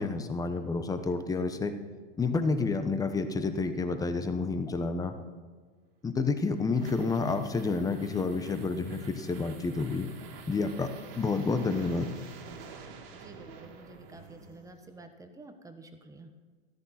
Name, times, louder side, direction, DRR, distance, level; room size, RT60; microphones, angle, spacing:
voice 1, 0.0-1.7 2.2-5.2 6.0-10.1 10.5-12.3, left 4 dB, 10° left, 8 dB, 1.0 m, -29 dB
sound 1, 6.1-15.0, right 5 dB, 70° right, 2.7 m, -49 dB
voice 2, 13.1-16.3, right 2 dB, 10° right, 7 dB, 1.2 m, -50 dB
13.5 x 13.5 x 4.3 m, 1.5 s
hypercardioid pair, 125°, 30 cm